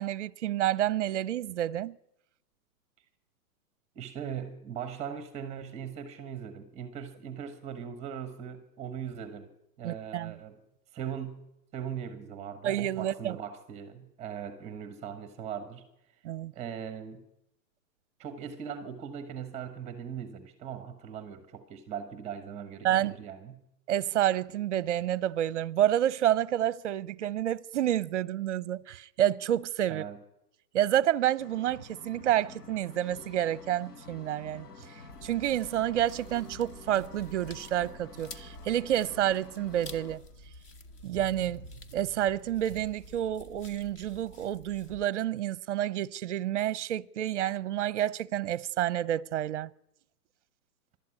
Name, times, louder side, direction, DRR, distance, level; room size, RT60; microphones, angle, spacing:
voice 1, 0.0-2.0 9.8-10.3 12.6-13.4 16.2-16.5 22.8-23.2 23.9-30.0 30.7-34.7 35.2-40.2 41.0-41.7 41.9-49.7, right 12 dB, 50° right, 0.7 m, -29 dB
voice 2, 3.9-9.5 9.8-10.6 10.9-11.5 11.7-15.9 16.5-17.3 18.2-23.6 29.9-30.2, right 8 dB, 15° right, 1.2 m, -40 dB
sound 1, 31.4-40.2, left 4 dB, 80° left, 4.0 m, -49 dB
sound 2, 35.1-45.0, left 1 dB, 20° left, 0.8 m, -49 dB
24.5 x 12.5 x 9.8 m
hypercardioid pair, 160°, 47 cm